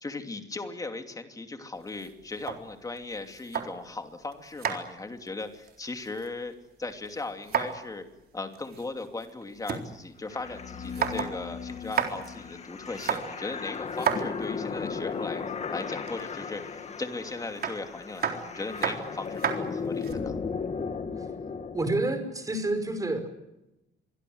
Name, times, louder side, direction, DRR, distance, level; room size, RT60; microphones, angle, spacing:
voice 1, 0.0-6.5 6.8-8.0 8.3-15.4 15.7-20.4, left 3 dB, 20° left, 6 dB, 2.8 m, -38 dB
sound 1, 1.8-4.0 4.3-6.5 6.8-7.9 8.2-8.3 8.5-9.8 10.2-10.3 10.7-11.4 11.7-12.3 12.9-14.9 15.8-16.3 17.6-20.1, right 7 dB, 55° right, 4.0 m, -33 dB
sound 2, 10.3-22.0, left 5 dB, 35° left, 2.0 m, -36 dB
voice 2, 21.7-23.3, right 2 dB, 20° right, 8 dB, 5.4 m, -28 dB
27.5 x 23.5 x 8.0 m, 0.93 s
cardioid pair, 150°, 19 cm